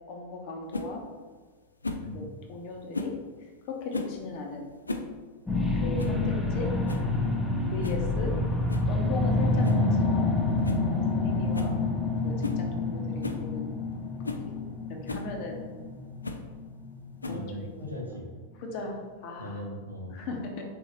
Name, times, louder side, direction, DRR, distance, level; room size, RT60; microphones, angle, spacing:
voice 1, 0.1-1.0 2.1-3.1 3.7-4.7 5.8-6.7 7.7-8.3 8.9-10.3 11.1-11.8 12.2-13.8 14.3-14.6 14.9-15.6 17.3-17.7 18.6-19.0 19.2-19.6 20.1-20.6, left 3 dB, 45° left, 1 dB, 0.8 m, -37 dB
sound 1, 0.7-0.9 1.8-2.1 2.9-3.2 3.9-4.2 4.7-5.1 5.4-5.5 6.0-6.2 6.6-6.7 6.9-7.1 7.8-8.1 8.7-8.9 9.6-9.9 10.2-10.3 10.6-10.9 11.1-11.2 11.5-11.8 12.4-12.6 13.2-13.4 13.9-14.0 14.2-14.5 15.1-15.3 16.2-16.5 17.2-17.6, left 2 dB, 80° left, 0.3 m, -35 dB
sound 2, 5.5-18.1 18.6-18.7, left 2 dB, 10° left, 0.6 m, -28 dB
voice 2, 17.2-18.3 19.4-20.3, left 1 dB, 90° right, -1 dB, 0.9 m, -38 dB
4.3 x 3.6 x 3.0 m, 1.5 s
figure-of-eight pair, 90°, 0 cm